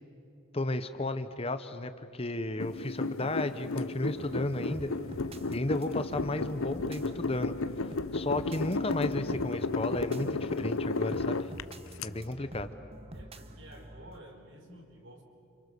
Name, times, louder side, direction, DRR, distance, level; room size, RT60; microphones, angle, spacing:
voice 1, 0.5-4.9 5.5-7.5 8.1-11.5 12.0-12.7, left 2 dB, 25° left, 10 dB, 0.8 m, -33 dB
sound 1, 2.6-12.1, left 3 dB, 70° left, 0.8 m, -33 dB
sound 2, 4.1-14.2, right 1 dB, 25° right, 1.0 m, -47 dB
voice 2, 13.1-15.2, right 1 dB, 55° right, 2 dB, 5.0 m, -52 dB
30.0 x 28.5 x 6.9 m, 2.7 s
head